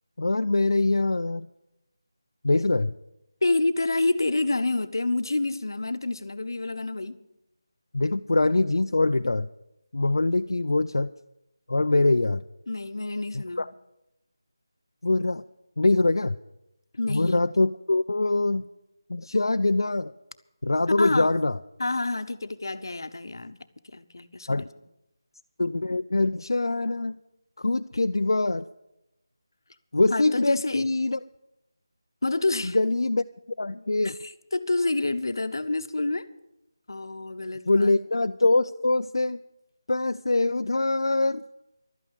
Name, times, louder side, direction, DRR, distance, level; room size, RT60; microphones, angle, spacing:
voice 1, 0.2-1.5 2.4-2.9 7.9-9.5 9.9-11.1 11.7-12.4 13.3-13.7 15.0-15.4 15.8-16.4 17.1-18.6 19.1-20.1 20.6-21.6 24.5-24.7 25.6-27.2 27.6-28.6 29.9-31.2 32.7-33.2 33.6-34.1 37.7-39.4 39.9-41.4, left 2 dB, 80° left, 0.4 m, -23 dB
voice 2, 3.4-7.2 12.7-13.6 16.9-17.5 21.0-21.3 21.8-23.6 23.8-24.7 30.1-30.9 32.2-32.8 34.0-36.3 36.9-38.0, left 2 dB, 60° left, 0.9 m, -28 dB
12.5 x 8.9 x 9.0 m
figure-of-eight pair, 180°, 2 cm